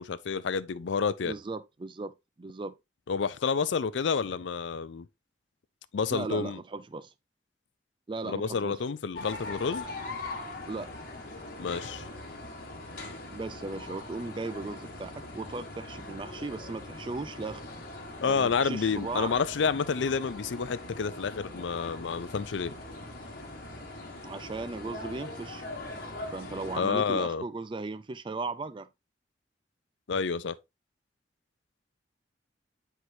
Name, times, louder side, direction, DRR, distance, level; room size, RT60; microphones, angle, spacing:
voice 1, 0.0-1.3 3.1-5.1 5.9-6.6 8.2-9.9 11.6-12.1 18.2-22.7 26.7-27.4 30.1-30.5, left 5 dB, 75° left, 0.5 m, -29 dB
voice 2, 1.2-2.1 2.4-2.7 6.1-7.1 8.1-8.8 10.7-10.9 13.3-17.6 18.2-19.4 24.2-25.6 26.3-28.9, right 3 dB, 25° right, 0.4 m, -37 dB
sound 1, 9.1-26.8, left 2 dB, 50° left, 1.4 m, -41 dB
8.1 x 4.6 x 2.7 m
head